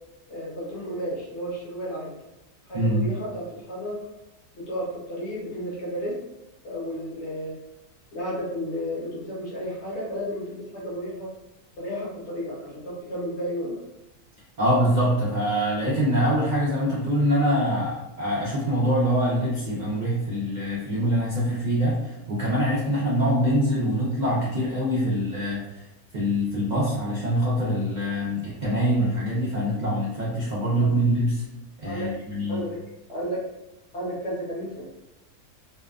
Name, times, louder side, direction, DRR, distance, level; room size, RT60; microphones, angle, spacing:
voice 1, 0.3-2.2 2.7-4.0 4.5-6.2 6.6-7.6 8.1-11.3 11.8-13.8 30.7-31.0 31.8-32.1 32.5-32.8 33.1-33.4 33.9-34.8, equal, 55° left, -6 dB, 1.0 m, -32 dB
voice 2, 2.7-3.1 14.6-25.9 26.1-31.4 31.8-32.6, equal, 80° right, -6 dB, 0.4 m, -24 dB
2.7 x 2.2 x 2.3 m, 0.93 s
omnidirectional pair, 1.6 m